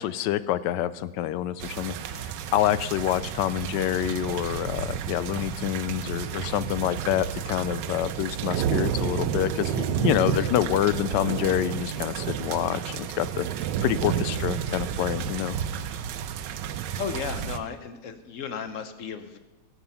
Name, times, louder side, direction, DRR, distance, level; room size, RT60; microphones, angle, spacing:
voice 1, 0.0-15.5, left 12 dB, 80° left, 16 dB, 1.2 m, -27 dB
sound 1, 1.6-17.6, right 9 dB, 85° right, 1.3 m, -31 dB
voice 2, 16.9-19.4, left 7 dB, 60° left, 10 dB, 0.9 m, -34 dB
17.0 x 6.9 x 5.6 m, 1.1 s
omnidirectional pair, 1.9 m